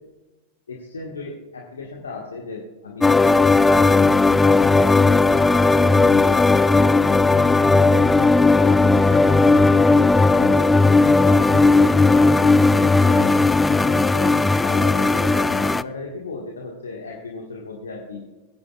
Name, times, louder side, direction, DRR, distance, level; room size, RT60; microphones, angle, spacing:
voice 1, 0.7-4.0 4.3-9.8 10.4-10.7 11.2-13.3 13.7-18.2, left 3 dB, 70° left, -1 dB, 1.6 m, -35 dB
sound 1, 3.0-15.8, left 3 dB, 10° left, 0.3 m, -16 dB
20.0 x 9.5 x 2.4 m, 1.1 s
figure-of-eight pair, 90°, 0 cm